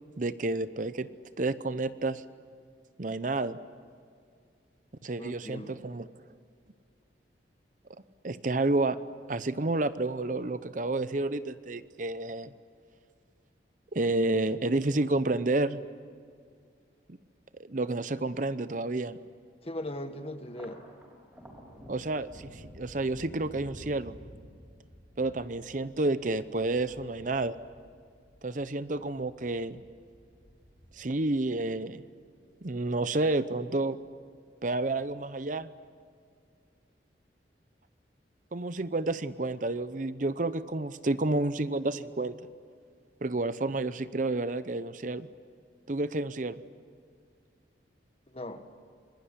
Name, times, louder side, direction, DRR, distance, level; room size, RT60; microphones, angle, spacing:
voice 1, 0.2-1.1 1.4-2.2 3.0-3.6 5.0-6.0 8.2-9.0 9.3-12.5 13.9-15.8 17.6-19.2 21.9-24.2 25.2-27.6 28.4-29.8 30.9-32.0 32.6-34.0 34.6-35.7 38.5-42.4 43.2-45.3 45.9-46.6, right 2 dB, 45° right, 13 dB, 0.7 m, -30 dB
voice 2, 5.2-5.8 19.6-20.8 48.3-48.6, left 1 dB, 35° left, 8 dB, 1.5 m, -39 dB
Thunder, 20.4-33.1 33.5-34.3 34.6-35.5, equal, 10° right, 5.9 m, -53 dB
26.5 x 22.0 x 9.9 m, 2.2 s
head